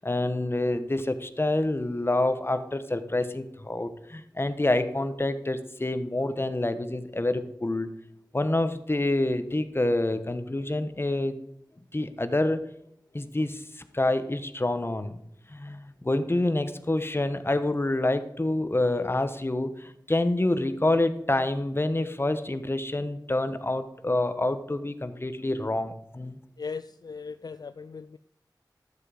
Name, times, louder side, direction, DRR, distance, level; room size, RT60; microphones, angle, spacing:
voice 1, 0.0-7.9 8.3-11.4 11.9-12.6 13.1-15.2 15.5-26.4, left 2 dB, 30° left, 10 dB, 1.1 m, -27 dB
voice 2, 26.6-28.2, left 5 dB, 60° left, 12 dB, 0.3 m, -38 dB
12.5 x 7.4 x 5.0 m, 0.75 s
wide cardioid pair, 55°, 8 cm